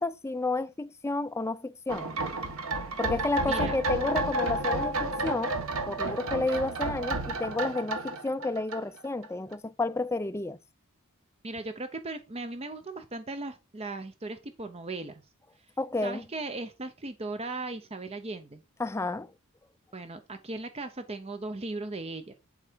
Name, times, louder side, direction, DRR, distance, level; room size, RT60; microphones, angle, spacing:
voice 1, 0.0-2.2 3.0-5.5 5.9-10.6 15.8-16.2 18.8-19.3, left 2 dB, 10° left, 0.4 m, -31 dB
sound 1, 1.9-9.3 9.5-9.6, right 2 dB, 70° right, 1.2 m, -31 dB
voice 2, 3.5-3.8 11.4-15.2 15.6-15.7 16.0-18.6 19.9-22.3, right 2 dB, 30° right, 0.7 m, -37 dB
11.0 x 4.8 x 4.5 m
head